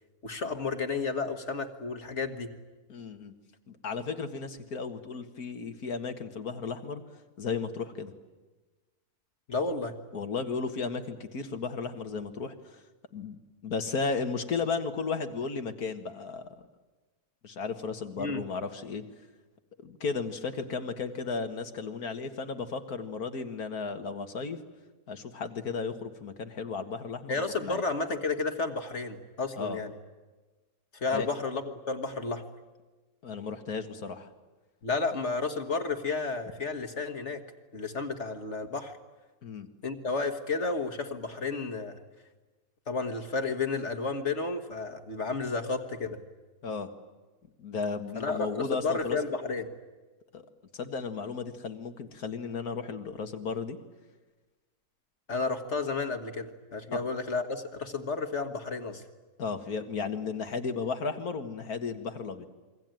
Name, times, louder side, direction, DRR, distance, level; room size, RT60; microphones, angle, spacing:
voice 1, 0.2-2.5 9.5-9.9 18.2-18.4 27.3-29.9 30.9-32.4 34.8-37.4 37.7-38.9 39.8-42.0 42.9-46.2 48.1-49.7 55.3-59.0, left 4 dB, 50° left, 6 dB, 1.8 m, -32 dB
voice 2, 2.9-3.3 3.7-7.0 7.4-8.1 10.1-12.8 13.1-13.4 13.6-16.6 17.4-19.0 19.8-24.6 25.1-27.8 29.6-29.8 31.1-31.3 33.2-34.3 39.4-39.7 46.6-46.9 47.6-49.2 50.3-50.5 50.7-53.8 56.9-57.0 59.4-62.5, left 4 dB, 75° left, 7 dB, 2.2 m, -34 dB
28.0 x 22.5 x 9.2 m, 1.2 s
omnidirectional pair, 1.6 m